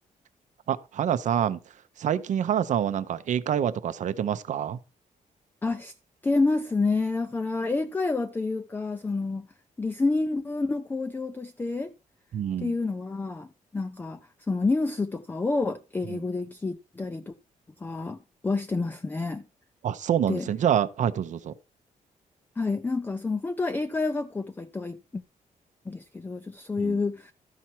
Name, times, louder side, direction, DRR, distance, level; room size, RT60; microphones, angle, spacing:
voice 1, 0.7-4.8 12.3-12.8 16.1-16.2 19.8-21.5 26.8-27.0, right 9 dB, 60° right, 0.7 m, -27 dB
voice 2, 5.6-5.9 6.2-9.5 9.8-11.9 12.6-14.2 14.5-17.4 17.8-19.4 20.3-20.5 22.6-25.2 25.9-27.3, left 3 dB, 15° left, 0.4 m, -28 dB
13.0 x 5.7 x 4.4 m
wide cardioid pair, 165°, 14 cm